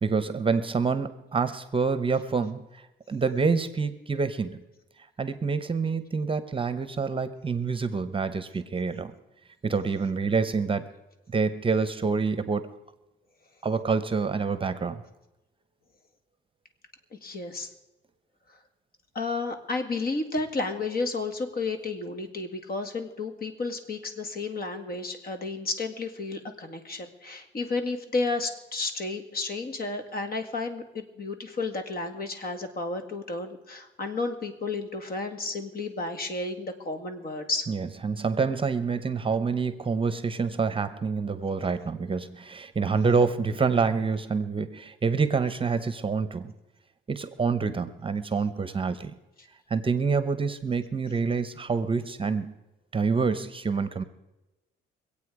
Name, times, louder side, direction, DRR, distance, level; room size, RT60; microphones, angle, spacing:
voice 1, 0.0-2.6 3.1-4.6 5.2-9.1 9.6-10.9 11.3-12.7 13.6-15.0 37.7-46.5 47.1-49.1 49.7-52.5 52.9-54.0, right 5 dB, 25° right, 13 dB, 0.9 m, -27 dB
voice 2, 17.2-17.7 19.1-37.7, left 3 dB, 50° left, 7 dB, 2.0 m, -32 dB
24.5 x 8.5 x 4.9 m, 1.0 s
cardioid pair, 90°, 20 cm